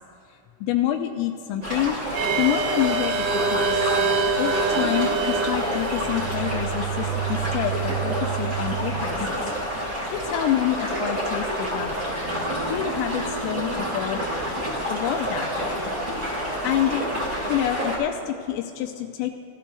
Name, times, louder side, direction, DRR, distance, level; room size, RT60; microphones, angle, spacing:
voice 1, 0.6-2.0 2.4-3.9 4.4-9.5 10.1-12.0 12.7-14.3 14.9-15.8 16.6-17.0 17.5-19.3, left 12 dB, 85° left, 4 dB, 2.9 m, -27 dB
sound 1, 1.6-18.0, equal, 35° right, 1.4 m, -29 dB
sound 2, 2.2-9.1, right 5 dB, 90° right, 3.5 m, -26 dB
Acoustic guitar, 12.2-17.4, right 4 dB, 60° right, 2.8 m, -40 dB
19.5 x 12.5 x 2.3 m, 2.6 s
omnidirectional pair, 5.9 m